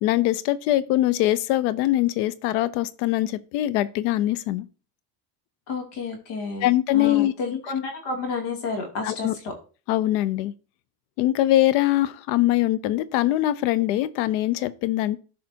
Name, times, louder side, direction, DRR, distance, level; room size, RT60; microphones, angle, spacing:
voice 1, 0.0-4.6 6.6-7.3 9.0-9.4 9.9-10.5 11.2-15.2, left 15 dB, 85° left, 0.8 m, -22 dB
voice 2, 5.7-9.5, left 4 dB, 60° left, 2.8 m, -30 dB
13.0 x 5.0 x 2.8 m
cardioid pair, 125°, 47 cm